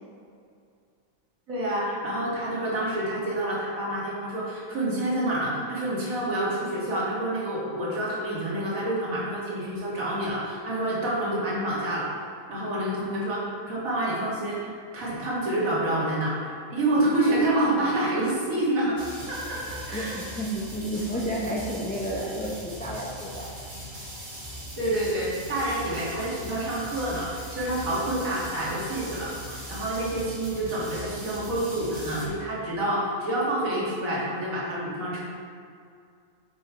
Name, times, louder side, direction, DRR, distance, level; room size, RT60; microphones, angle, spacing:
voice 1, 1.5-12.1 12.5-19.0 19.3-20.2 24.8-35.2, right 1 dB, 70° right, -6 dB, 2.2 m, -28 dB
sound 1, 19.0-32.3, equal, 35° right, 1.4 m, -40 dB
voice 2, 19.9-23.5, equal, 10° left, -4 dB, 0.5 m, -31 dB
6.7 x 5.1 x 4.5 m, 2.3 s
omnidirectional pair, 1.5 m